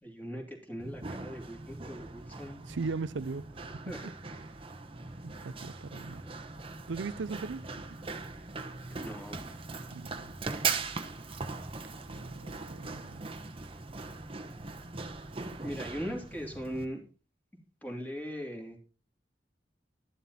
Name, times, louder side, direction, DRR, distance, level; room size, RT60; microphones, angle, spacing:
voice 1, 0.0-2.7 3.8-4.1 6.2-6.3 8.9-9.5 15.6-17.0 17.8-18.8, equal, 10° left, 2.8 m, -40 dB
Run, 0.8-16.8, right 4 dB, 30° right, 1.1 m, -40 dB
voice 2, 2.7-4.1 4.4-4.5 5.2-6.2 6.9-8.0 9.9-10.3 12.1-13.3, right 4 dB, 80° right, 0.5 m, -39 dB
11.5 x 11.0 x 4.2 m
head